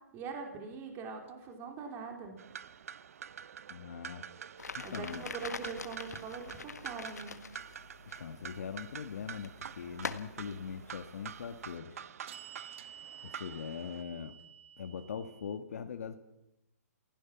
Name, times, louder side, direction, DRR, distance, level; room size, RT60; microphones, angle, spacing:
voice 1, 0.1-2.3 4.8-7.3, right 5 dB, 25° right, 3 dB, 3.6 m, -42 dB
sound 1, 1.3-1.4 11.6-15.6, right 9 dB, 50° right, 1.5 m, -51 dB
sound 2, 2.4-14.0, right 8 dB, 65° right, 0.8 m, -47 dB
voice 2, 3.7-4.2 4.7-5.2 8.2-12.0 13.2-14.4 14.8-16.2, left 7 dB, 65° left, 8 dB, 1.7 m, -41 dB
sound 3, 4.6-11.8, left 5 dB, 90° left, 1.7 m, -46 dB
29.0 x 16.5 x 6.0 m, 0.86 s
hypercardioid pair, 140°, 9 cm